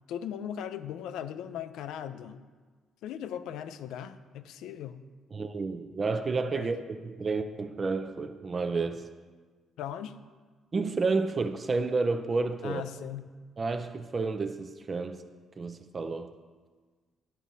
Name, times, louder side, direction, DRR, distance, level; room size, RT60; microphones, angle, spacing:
voice 1, 0.1-2.4 3.0-5.0 6.5-6.7 9.8-10.2 12.6-13.3, left 9 dB, 90° left, 0.3 m, -38 dB
voice 2, 5.3-9.0 10.7-12.8 13.6-15.2 15.6-16.3, right 4 dB, 35° right, 0.4 m, -30 dB
10.0 x 6.1 x 2.7 m
cardioid pair, 90°, 0 cm